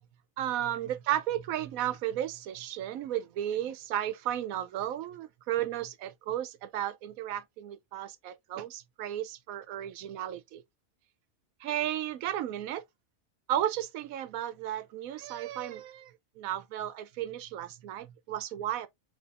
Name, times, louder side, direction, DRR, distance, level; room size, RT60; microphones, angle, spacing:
voice 1, 0.4-10.6 11.6-12.8 13.5-18.9, right 12 dB, 90° right, 1.0 m, -34 dB
6.6 x 3.1 x 2.4 m
omnidirectional pair, 1.4 m